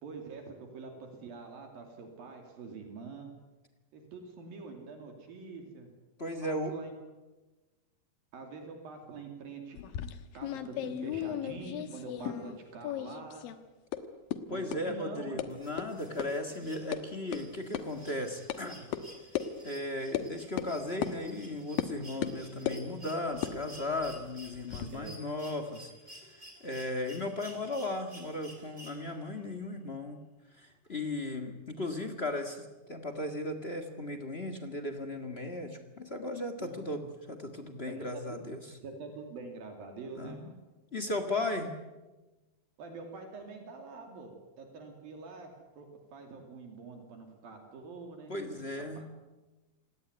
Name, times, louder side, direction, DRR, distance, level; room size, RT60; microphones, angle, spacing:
voice 1, 0.0-3.3 3.9-5.9 6.4-6.9 8.3-9.8 10.3-13.5 14.5-15.4 24.9-25.2 27.2-27.4 36.6-36.8 37.9-38.2 38.8-40.5 41.3-41.7 42.8-48.6 48.9-49.1, right 4 dB, 70° right, 4 dB, 4.4 m, -45 dB
voice 2, 6.2-6.7 14.5-18.9 19.6-25.9 26.2-30.2 30.5-38.6 40.2-40.5 40.9-41.7 48.3-49.0, left 2 dB, 40° left, 6 dB, 0.9 m, -36 dB
sound 1, 9.7-12.6 12.8-13.6 13.9-14.0 14.3-14.4 14.7-14.8 15.4-15.5 15.8-15.9 16.2-16.3 16.6-17.0 17.3-17.4 17.7-17.8 18.5-18.6 18.9-19.0 19.3-19.5 20.1-20.3 20.6-20.7 21.0-21.1 21.8-21.9 22.2-22.8 23.3-24.9, left 11 dB, 70° left, 3.0 m, -35 dB
sound 2, 15.5-29.4 30.8-30.9, right 1 dB, 15° right, 3.2 m, -53 dB
28.0 x 17.5 x 9.5 m, 1.2 s
omnidirectional pair, 4.3 m